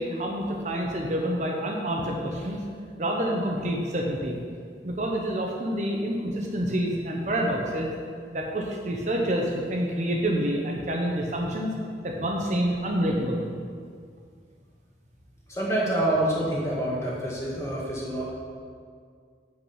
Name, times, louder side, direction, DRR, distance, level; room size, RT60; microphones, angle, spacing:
voice 1, 0.0-2.6 3.0-4.4 4.8-7.9 8.3-11.7 12.0-13.5, right 1 dB, 45° right, 0 dB, 0.9 m, -27 dB
voice 2, 15.5-18.2, right 1 dB, 15° left, -5 dB, 1.7 m, -27 dB
7.7 x 6.0 x 5.5 m, 2.1 s
head